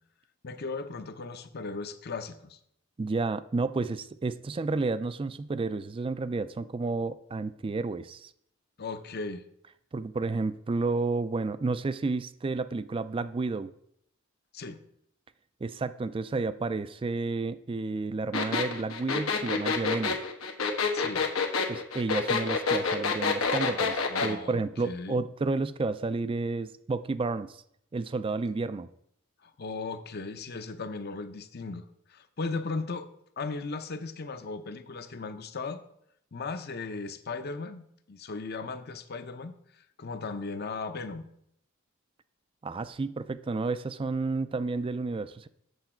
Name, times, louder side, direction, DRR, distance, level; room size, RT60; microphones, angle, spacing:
voice 1, 0.4-2.6 8.8-9.4 14.5-14.8 20.9-21.2 24.1-25.2 29.4-33.1 33.4-35.8 36.3-41.2, left 3 dB, 50° left, 9 dB, 0.7 m, -37 dB
voice 2, 3.0-8.3 9.9-13.7 15.6-20.2 21.7-27.6 27.9-28.9 42.6-45.5, right 3 dB, 25° right, 14 dB, 0.3 m, -31 dB
sound 1, 18.3-24.3, left 5 dB, 90° left, 1.2 m, -27 dB
8.2 x 6.9 x 4.4 m, 0.72 s
head